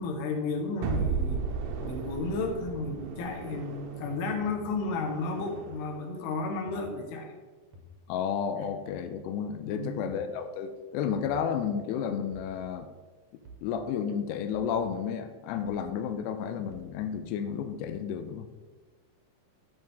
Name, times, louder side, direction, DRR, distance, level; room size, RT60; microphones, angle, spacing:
voice 1, 0.0-1.5 1.8-7.3 9.7-10.0, left 3 dB, 70° left, 3 dB, 2.9 m, -33 dB
sound 1, 0.8-5.9, right 5 dB, 85° right, 3.3 m, -35 dB
sound 2, 1.2-1.3 2.3-2.4 3.3-3.4 4.5-4.6 5.5-5.7 6.7-6.9 7.7-7.9 8.9-9.1 10.0-10.2 11.1-11.4 12.3-12.5 13.4-13.7 14.5-14.8 15.7-15.9 16.7-16.9, equal, 65° right, 2.1 m, -50 dB
voice 2, 8.1-12.9 13.6-18.5, left 7 dB, 90° left, 8 dB, 2.4 m, -32 dB
14.0 x 6.4 x 3.5 m, 1.3 s
omnidirectional pair, 5.6 m